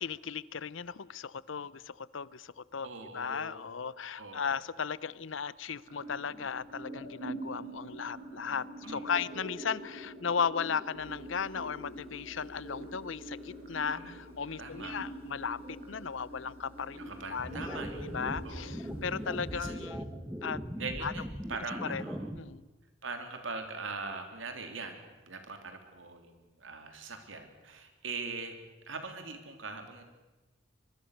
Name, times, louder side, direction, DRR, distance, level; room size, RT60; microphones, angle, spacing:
voice 1, 0.0-2.9 3.1-17.0 17.3-20.1 20.4-20.6 21.0-21.1 21.8-22.0 22.4-22.6, left 6 dB, 75° left, 20 dB, 0.7 m, -36 dB
voice 2, 2.8-3.6 4.2-4.6 8.8-9.2 13.9-14.1 14.6-15.0 17.0-18.1 18.4-18.8 19.5-19.9 20.8-22.3 23.0-28.6 28.8-30.0, right 4 dB, 75° right, 6 dB, 3.3 m, -42 dB
sound 1, 5.9-21.9, right 1 dB, 45° right, 5.5 m, -45 dB
sound 2, 10.9-19.6, equal, 25° right, 7.3 m, -58 dB
sound 3, 17.4-22.4, equal, 5° right, 1.2 m, -40 dB
24.0 x 22.5 x 6.6 m, 1.2 s
head